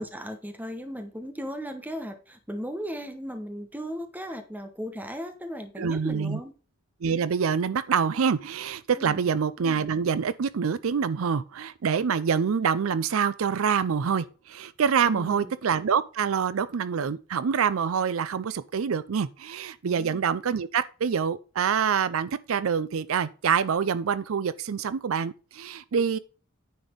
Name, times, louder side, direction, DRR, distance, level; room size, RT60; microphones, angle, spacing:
voice 1, 0.0-6.5 8.9-9.3 15.0-15.5 19.8-20.2, equal, 10° right, 1.1 m, -36 dB
voice 2, 5.8-6.4 7.0-26.2, right 6 dB, 80° right, 0.5 m, -26 dB
9.4 x 4.2 x 5.2 m
head